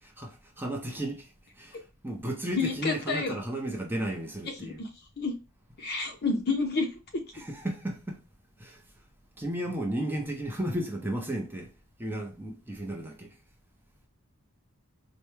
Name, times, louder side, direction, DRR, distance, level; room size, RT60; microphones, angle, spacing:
voice 1, 0.0-4.8 7.3-8.2 8.6-8.8 9.4-11.7 12.0-13.4, right 1 dB, 10° right, 0.6 m, -34 dB
voice 2, 2.6-3.3 4.6-4.9 5.2-5.3 5.8-6.9 7.1-7.2, left 4 dB, 45° left, 0.7 m, -29 dB
4.5 x 2.2 x 3.1 m
head